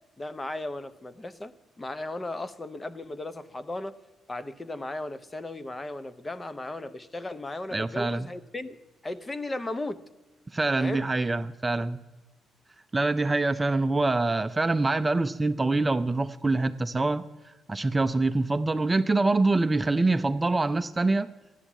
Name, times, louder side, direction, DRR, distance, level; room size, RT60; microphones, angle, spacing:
voice 1, 0.2-4.0 4.3-10.1 10.8-11.1, left 2 dB, 20° left, 0.8 m, -36 dB
voice 2, 7.7-8.3 10.5-12.0 12.9-17.2 17.7-21.3, right 2 dB, 20° right, 0.5 m, -25 dB
13.5 x 10.0 x 7.3 m
cardioid pair, 90°, 0 cm